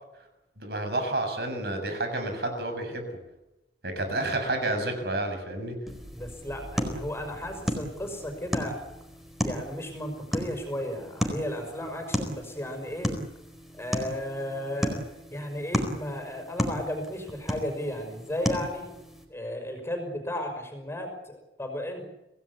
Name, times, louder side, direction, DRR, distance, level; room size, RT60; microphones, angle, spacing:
voice 1, 0.6-3.1 3.8-5.7, right 2 dB, 65° right, 6 dB, 6.8 m, -30 dB
sound 1, 5.9-19.3, equal, ahead, 4.3 m, -34 dB
voice 2, 6.1-8.8 9.4-13.2 13.8-18.9 19.3-22.1, left 1 dB, 15° left, 5 dB, 5.8 m, -34 dB
27.0 x 18.0 x 8.4 m, 0.96 s
head